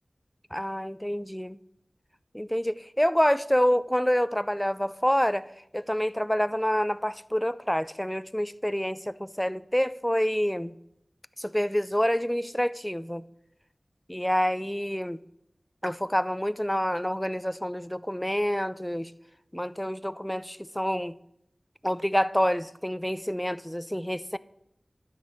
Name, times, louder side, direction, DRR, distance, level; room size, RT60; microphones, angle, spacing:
voice 1, 0.5-1.6 2.3-10.7 11.4-13.2 14.1-15.2 15.8-19.1 19.5-21.2 21.8-24.4, equal, 5° left, 0.3 m, -27 dB
12.0 x 4.1 x 6.9 m
wide cardioid pair, 70°, 0 cm